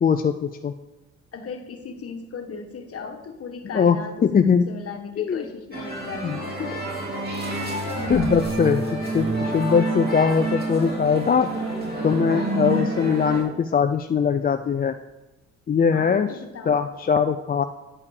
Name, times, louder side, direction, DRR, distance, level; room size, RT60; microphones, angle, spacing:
voice 1, 0.0-0.7 3.7-4.0 4.2-4.7 5.2-5.4 6.2-6.4 8.1-11.5 12.0-14.9 15.7-16.3 16.7-17.6, left 6 dB, 30° left, 8 dB, 0.5 m, -21 dB
voice 2, 1.3-6.6 8.0-8.6 15.9-16.8, left 5 dB, 50° left, 5 dB, 1.5 m, -37 dB
sound 1, 5.7-13.4, right 2 dB, 30° right, 3.7 m, -28 dB
9.8 x 5.5 x 6.6 m, 1.1 s
cardioid pair, 90°, 30 cm